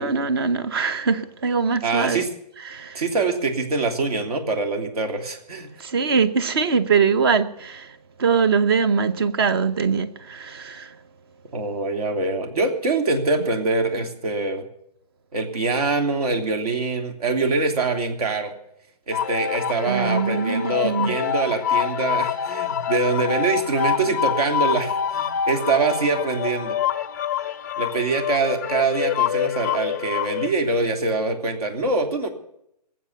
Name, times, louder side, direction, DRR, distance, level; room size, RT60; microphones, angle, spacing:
voice 1, 0.0-2.2 2.6-3.0 5.8-11.0 19.9-21.1, right 5 dB, 35° right, 1.0 m, -22 dB
voice 2, 1.8-2.3 2.9-5.7 11.5-14.7 15.3-18.5 19.1-26.8 27.8-32.3, right 3 dB, 60° right, 3.1 m, -24 dB
sound 1, 19.1-30.5, left 9 dB, 25° left, 0.5 m, -26 dB
20.0 x 7.8 x 8.3 m
hypercardioid pair, 155°, 21 cm